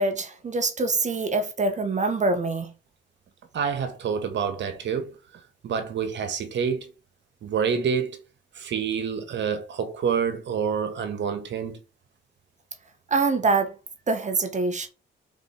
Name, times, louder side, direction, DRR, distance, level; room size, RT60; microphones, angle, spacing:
voice 1, 0.0-2.7 13.1-13.7 14.1-14.9, right 3 dB, 35° right, 1.6 m, -24 dB
voice 2, 3.5-6.9 7.4-8.2 8.5-11.8, right 6 dB, 65° right, 1.9 m, -28 dB
5.3 x 4.8 x 4.9 m
cardioid pair, 90°, 20 cm